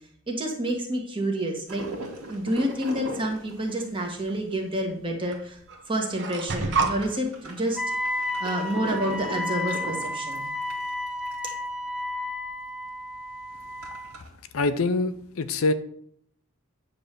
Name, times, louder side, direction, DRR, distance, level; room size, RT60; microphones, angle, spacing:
voice 1, 0.3-1.8 2.3-5.6 5.9-7.8 8.1-10.5, right 1 dB, 20° right, 1 dB, 1.5 m, -29 dB
sound 1, 1.7-5.7 6.1-6.2 6.4-11.7 12.1-12.2 12.4-12.5 13.0-14.3, right 1 dB, 70° right, 2.0 m, -39 dB
sound 2, 2.6-3.1 4.3-4.4 5.3-5.4 5.7-7.0, right 4 dB, 50° right, 1.0 m, -28 dB
Wind instrument woodwind instrument, 7.8-14.2, left 2 dB, 5° right, 0.4 m, -32 dB
voice 2, 14.5-15.7, left 3 dB, 65° left, 11 dB, 0.5 m, -24 dB
9.2 x 3.4 x 6.7 m, 0.66 s
head